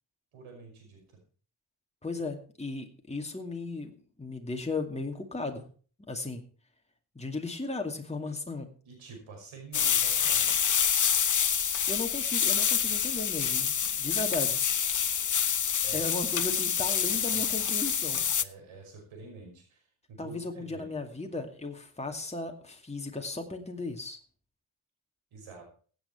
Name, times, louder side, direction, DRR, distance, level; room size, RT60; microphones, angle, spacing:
voice 1, 0.3-1.2 8.2-8.3 8.8-10.6 14.0-14.2 15.8-16.1 16.9-17.0 17.3-17.6 18.4-20.9 25.3-25.6, right 4 dB, 90° right, 3 dB, 5.6 m, -48 dB
voice 2, 2.0-5.6 6.1-6.4 7.1-8.7 11.9-14.6 15.9-18.3 20.2-24.2, left 3 dB, 15° left, 3 dB, 2.4 m, -36 dB
sound 1, 9.7-18.4, left 7 dB, 40° left, 0.8 m, -27 dB
15.5 x 9.0 x 4.5 m, 0.41 s
supercardioid pair, 50°, 48 cm